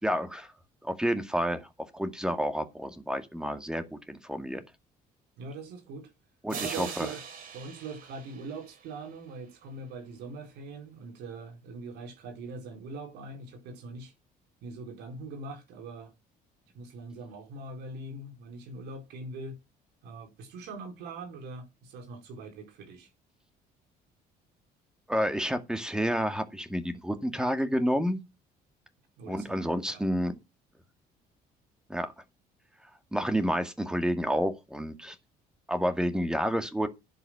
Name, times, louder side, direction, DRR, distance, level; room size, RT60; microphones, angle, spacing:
voice 1, 0.0-0.5 0.8-1.7 1.9-4.6 6.4-7.1 25.1-28.2 29.2-30.4 31.9-32.1 33.1-35.2 35.7-36.9, equal, 5° right, 2.2 m, -29 dB
voice 2, 5.4-6.1 6.6-14.1 14.6-16.1 16.7-19.6 20.0-23.1 29.2-30.0, right 3 dB, 85° right, 4.6 m, -42 dB
sound 1, 6.5-9.4, right 7 dB, 60° right, 4.0 m, -42 dB
11.5 x 8.3 x 5.9 m
cardioid pair, 110°, 17 cm